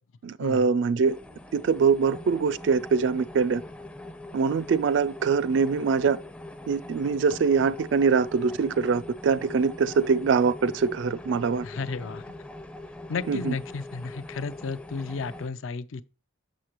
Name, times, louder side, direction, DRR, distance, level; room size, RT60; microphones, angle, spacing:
voice 1, 0.2-1.2 1.5-3.6 4.3-6.2 6.7-11.6 13.3-13.5, right 5 dB, 65° right, 0.3 m, -23 dB
sound 1, 1.0-15.5, left 2 dB, 5° left, 0.4 m, -42 dB
voice 2, 11.6-12.2 13.1-16.0, left 4 dB, 85° left, 0.4 m, -33 dB
6.5 x 6.3 x 2.9 m
head